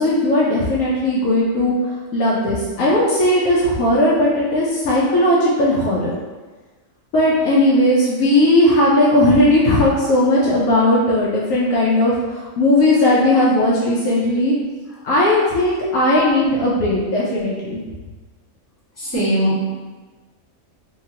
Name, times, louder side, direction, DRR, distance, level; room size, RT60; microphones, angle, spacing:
voice 1, 0.0-1.7 2.1-6.1 7.1-14.6 15.0-17.8, left 1 dB, 75° left, -6 dB, 1.0 m, -17 dB
voice 2, 19.0-19.8, right 1 dB, 10° left, -12 dB, 1.2 m, -20 dB
2.8 x 2.7 x 2.7 m, 1.3 s
omnidirectional pair, 1.5 m